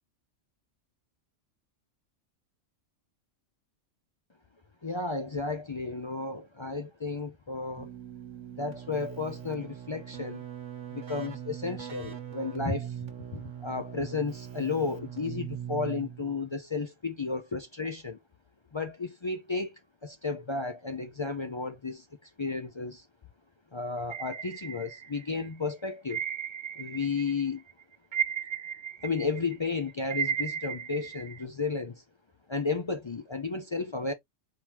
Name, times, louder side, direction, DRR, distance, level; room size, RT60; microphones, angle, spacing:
voice 1, 4.8-7.9 8.6-10.4 10.9-13.0 13.3-18.2 18.7-19.7 20.0-23.1 23.7-26.2 26.7-27.6 29.0-32.0 32.5-34.1, left 4 dB, 45° left, 0.3 m, -33 dB
Keyboard (musical), 7.7-16.5, right 10 dB, 90° right, 1.5 m, -41 dB
sound 1, 24.1-25.4 26.1-27.4 27.7-31.4, right 8 dB, 50° right, 0.7 m, -35 dB
4.6 x 3.6 x 2.9 m
omnidirectional pair, 1.3 m